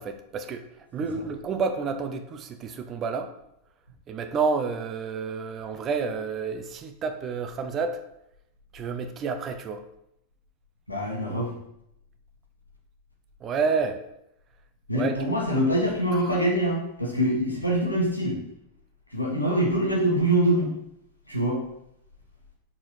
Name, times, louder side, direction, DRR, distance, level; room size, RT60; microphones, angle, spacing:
voice 1, 0.0-3.3 4.1-8.0 8.7-9.8 13.4-14.0 14.9-15.2, right 5 dB, 30° right, 8 dB, 0.6 m, -29 dB
voice 2, 10.9-11.5 14.9-18.4 19.1-20.7 21.3-21.6, right 1 dB, 85° left, -3 dB, 1.5 m, -24 dB
4.9 x 4.2 x 4.7 m, 0.81 s
figure-of-eight pair, 90°, 0 cm